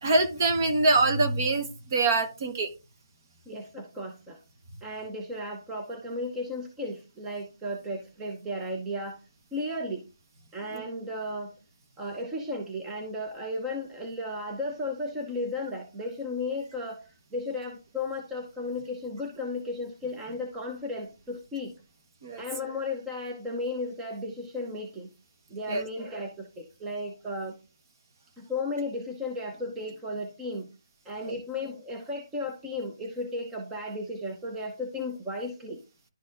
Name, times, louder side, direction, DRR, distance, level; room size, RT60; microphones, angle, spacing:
voice 1, 0.0-2.7 10.7-10.8 22.2-22.4 25.7-25.8 31.2-31.3, right 2 dB, 40° right, 9 dB, 1.1 m, -24 dB
voice 2, 3.5-4.4 4.8-9.2 9.5-10.0 10.5-11.5 12.0-17.0 17.3-21.7 22.4-25.1 25.5-27.6 28.4-30.7 31.1-35.8, left 2 dB, 10° right, 1 dB, 0.7 m, -34 dB
11.5 x 4.1 x 2.5 m, 0.29 s
hypercardioid pair, 165°, 3 cm